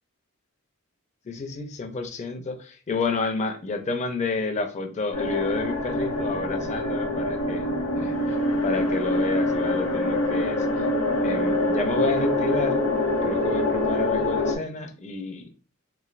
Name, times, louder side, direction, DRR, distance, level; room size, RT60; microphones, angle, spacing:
voice 1, 1.3-7.7 7.9-10.9 11.2-12.8 13.2-15.5, left 3 dB, 30° left, 6 dB, 0.4 m, -30 dB
sound 1, 5.1-14.6, left 1 dB, 60° left, 0.8 m, -25 dB
3.1 x 2.5 x 2.4 m, 0.37 s
head